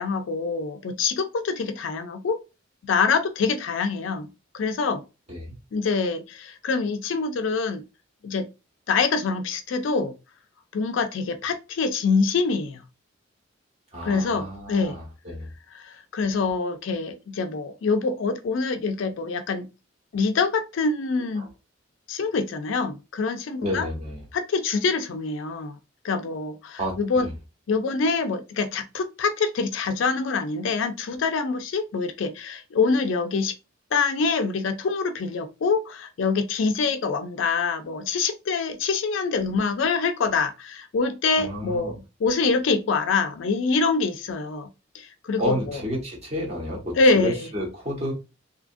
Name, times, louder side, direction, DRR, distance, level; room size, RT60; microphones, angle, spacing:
voice 1, 0.0-2.4 2.8-4.3 4.5-5.0 5.7-7.8 8.2-8.5 8.9-10.1 10.7-12.8 14.0-15.0 15.7-19.7 20.1-21.5 22.1-23.9 24.3-25.8 26.0-27.3 27.7-33.5 33.9-45.8 47.0-47.5, left 4 dB, 65° left, 0.4 m, -25 dB
voice 2, 13.9-15.5 21.4-21.5 23.6-24.2 26.8-27.3 41.4-42.0 45.4-48.1, equal, 35° right, 1.0 m, -31 dB
2.7 x 2.4 x 2.5 m
head